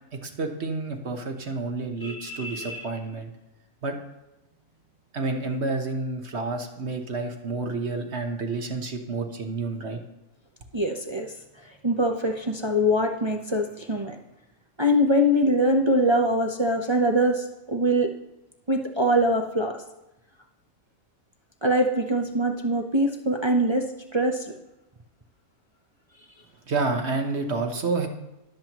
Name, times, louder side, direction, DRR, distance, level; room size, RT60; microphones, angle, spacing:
voice 1, 0.1-3.3 3.8-4.0 5.1-10.0 26.7-28.1, right 3 dB, 50° right, 4 dB, 1.3 m, -29 dB
voice 2, 2.0-2.8 10.7-11.3 11.8-14.2 14.8-18.1 18.7-19.8 21.6-23.9 24.1-24.5, equal, 30° right, 2 dB, 0.5 m, -23 dB
19.5 x 7.6 x 3.0 m, 0.96 s
omnidirectional pair, 1.6 m